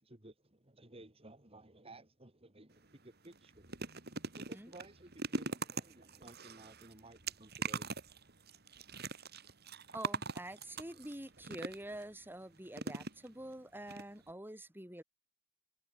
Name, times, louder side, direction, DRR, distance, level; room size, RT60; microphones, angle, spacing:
voice 1, 0.0-3.8 4.3-8.0, right 2 dB, 30° right, 3.4 m, -56 dB
sound 1, 2.7-2.9 3.2-12.0 12.7-13.5 13.9-14.0 14.3-14.4, right 4 dB, 50° right, 4.7 m, -42 dB
voice 2, 9.9-15.0, right 1 dB, 10° right, 6.1 m, -46 dB
head